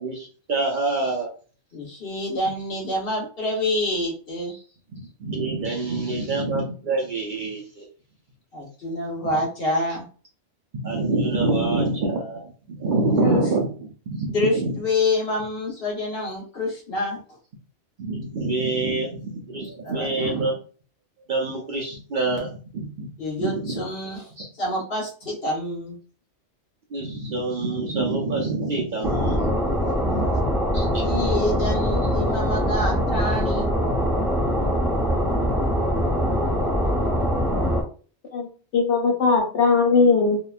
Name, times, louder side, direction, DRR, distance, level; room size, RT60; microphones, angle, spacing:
voice 1, 0.0-1.3 4.5-4.6 4.9-7.8 10.7-13.7 14.1-14.8 18.0-20.6 21.3-23.1 23.4-23.8 24.4-24.5 26.9-29.5 30.1-30.3 30.7-31.0, right 3 dB, 55° right, -1 dB, 0.6 m, -26 dB
voice 2, 1.7-4.5 8.5-10.0 13.2-13.4 14.3-17.2 19.8-20.5 23.2-24.3 24.6-26.0 31.0-33.7, left 2 dB, 55° left, -2 dB, 1.2 m, -27 dB
sound 1, 29.0-37.8, equal, ahead, 0.6 m, -23 dB
voice 3, 38.3-40.4, left 4 dB, 80° left, -1 dB, 1.3 m, -19 dB
2.8 x 2.2 x 2.3 m, 0.39 s
omnidirectional pair, 1.2 m